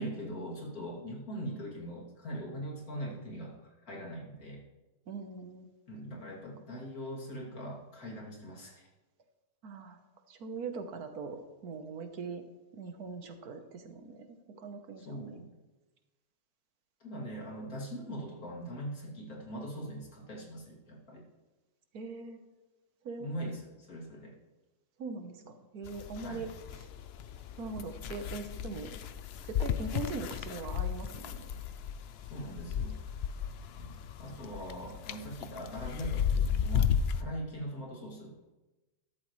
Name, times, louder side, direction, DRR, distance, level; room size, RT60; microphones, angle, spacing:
voice 1, 0.0-4.6 5.9-8.9 15.0-15.5 17.0-21.2 23.2-24.3 26.2-26.4 32.3-33.3 33.8-38.4, equal, 60° left, -3 dB, 3.1 m, -41 dB
voice 2, 5.1-5.7 9.6-10.0 10.3-12.4 12.7-15.4 21.9-22.4 23.0-23.3 25.0-26.5 26.8-26.9 27.6-28.9 29.4-31.4, right 4 dB, 70° right, 7 dB, 1.5 m, -41 dB
sound 1, 25.8-37.2, left 8 dB, 85° left, 0.5 m, -34 dB
13.5 x 12.5 x 3.2 m, 1.1 s
omnidirectional pair, 1.7 m